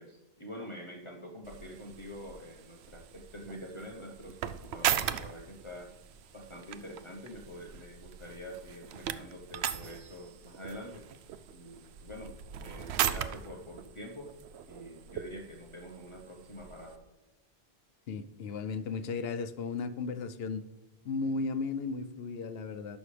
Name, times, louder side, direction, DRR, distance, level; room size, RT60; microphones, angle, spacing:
voice 1, 0.0-5.9 6.3-11.1 11.5-12.4 12.6-14.3 14.7-17.0, equal, 30° left, 0 dB, 1.0 m, -46 dB
sound 1, 1.4-17.0, right 10 dB, 90° right, 0.8 m, -39 dB
voice 2, 18.1-20.6 21.0-23.0, left 4 dB, 75° left, 9 dB, 0.9 m, -35 dB
11.0 x 6.3 x 3.3 m, 1.1 s
omnidirectional pair, 1.1 m